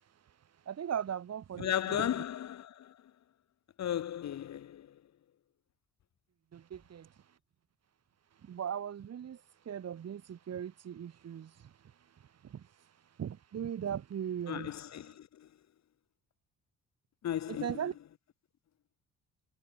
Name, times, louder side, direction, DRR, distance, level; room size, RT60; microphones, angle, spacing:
voice 1, 0.7-2.1 6.5-7.1 8.4-9.4 9.7-11.7 12.4-12.7 13.2-14.7 17.5-17.9, right 9 dB, 55° right, 3.8 m, -38 dB
voice 2, 1.6-3.0 3.8-5.0 14.5-15.5 17.2-17.8, left 10 dB, 65° left, 2.0 m, -35 dB
cardioid pair, 90°, 30 cm